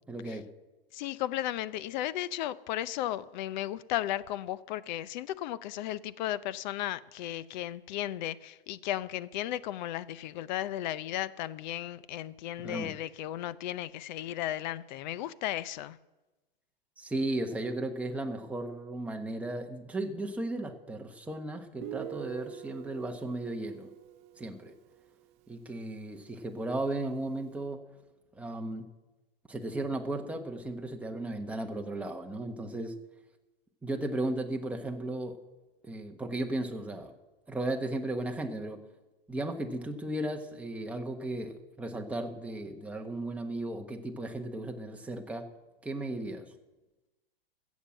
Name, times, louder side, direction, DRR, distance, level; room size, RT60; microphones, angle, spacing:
voice 1, 0.1-0.4 12.6-13.0 17.0-23.9 24.4-24.7 25.5-27.8 28.3-28.9 29.5-32.9 33.8-35.4 35.9-37.1 37.5-38.8 39.3-45.5 45.8-46.5, right 2 dB, 5° right, 1.1 m, -35 dB
voice 2, 0.9-16.0, left 13 dB, 50° left, 0.7 m, -35 dB
Guitar, 21.8-25.3, right 14 dB, 20° right, 0.3 m, -45 dB
15.0 x 7.3 x 7.6 m
hypercardioid pair, 130°, 30 cm